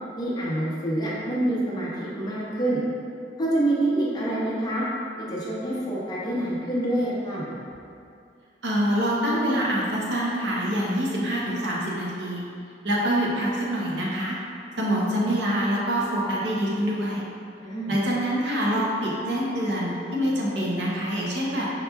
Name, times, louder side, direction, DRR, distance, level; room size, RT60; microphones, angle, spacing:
voice 1, 0.2-2.8 3.4-4.8 5.2-7.5 17.6-18.0, right 1 dB, 25° left, -7 dB, 0.7 m, -26 dB
voice 2, 8.6-12.4 12.8-14.4 14.8-17.2 17.9-21.7, equal, 75° right, -4 dB, 0.8 m, -25 dB
5.6 x 2.9 x 2.3 m, 2.5 s
head